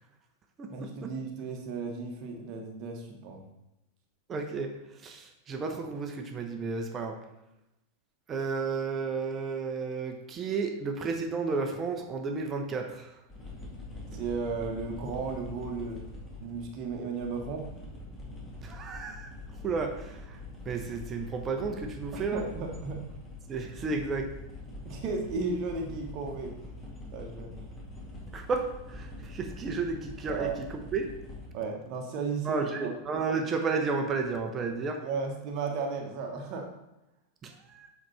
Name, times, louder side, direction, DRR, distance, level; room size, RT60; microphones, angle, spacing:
voice 1, 0.7-3.4 14.1-16.0 16.4-17.7 22.1-23.0 24.8-26.5 27.1-27.5 30.3-30.6 31.5-33.0 35.0-36.7, right 4 dB, 40° right, 2 dB, 1.2 m, -34 dB
voice 2, 4.3-7.2 8.3-13.1 18.6-19.3 19.6-20.4 20.6-22.4 23.5-24.3 28.3-31.1 32.4-35.0 37.4-37.9, right 4 dB, 25° right, 3 dB, 0.9 m, -32 dB
sound 1, 13.3-31.5, left 1 dB, 15° left, 2.0 m, -44 dB
7.8 x 4.9 x 4.1 m, 0.91 s
figure-of-eight pair, 90°, 0 cm